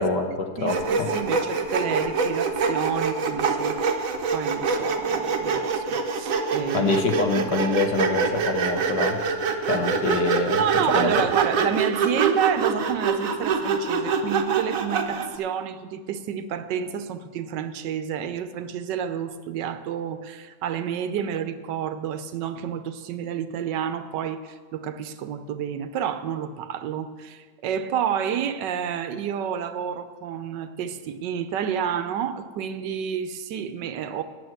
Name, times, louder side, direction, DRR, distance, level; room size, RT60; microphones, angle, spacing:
voice 1, 0.0-1.1 6.7-9.2 9.7-10.6 10.9-11.1, left 3 dB, 80° left, 5 dB, 1.9 m, -25 dB
voice 2, 0.6-6.9 10.6-34.2, right 8 dB, 80° right, 10 dB, 1.4 m, -29 dB
Sawing, 0.7-15.4, right 5 dB, 55° right, 1.2 m, -25 dB
9.3 x 8.0 x 7.8 m, 1.5 s
omnidirectional pair, 1.9 m